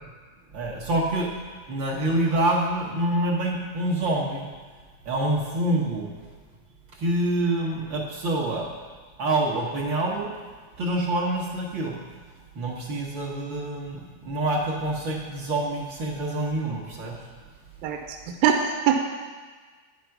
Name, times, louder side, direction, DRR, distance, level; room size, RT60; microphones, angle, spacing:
voice 1, 0.5-1.3 1.7-4.5 5.0-6.1 6.9-8.6 9.2-10.3 10.8-12.0 12.5-17.2, right 1 dB, 55° right, -3 dB, 1.5 m, -26 dB
voice 2, 17.8-18.2 18.4-19.0, right 8 dB, 85° right, 4 dB, 2.1 m, -22 dB
10.0 x 6.4 x 5.8 m, 1.5 s
omnidirectional pair, 3.4 m